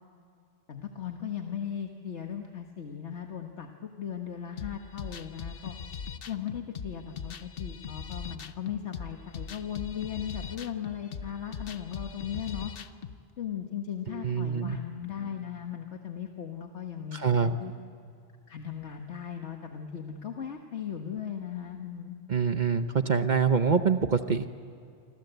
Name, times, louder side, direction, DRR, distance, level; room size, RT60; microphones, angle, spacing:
voice 1, 0.7-5.7 6.3-12.7 13.4-17.7 18.5-22.2, left 9 dB, 80° left, 3 dB, 1.7 m, -37 dB
sound 1, 4.6-13.2, left 6 dB, 60° left, 1.0 m, -40 dB
voice 2, 14.2-14.8 17.1-17.5 22.3-24.5, right 6 dB, 45° right, 9 dB, 0.9 m, -25 dB
27.5 x 25.5 x 8.1 m, 2.5 s
omnidirectional pair, 1.1 m